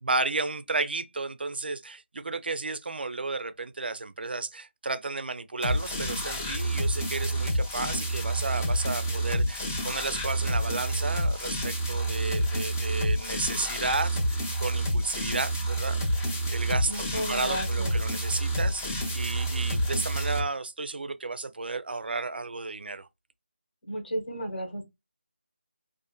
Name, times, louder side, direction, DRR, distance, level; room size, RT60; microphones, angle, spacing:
voice 1, 0.0-16.2 16.5-23.1, right 3 dB, 60° right, 0.3 m, -33 dB
sound 1, 5.6-20.4, right 1 dB, 15° left, 0.4 m, -28 dB
voice 2, 16.9-17.9 23.9-24.8, equal, 55° left, 1.0 m, -33 dB
2.5 x 2.4 x 2.3 m
figure-of-eight pair, 170°, 6 cm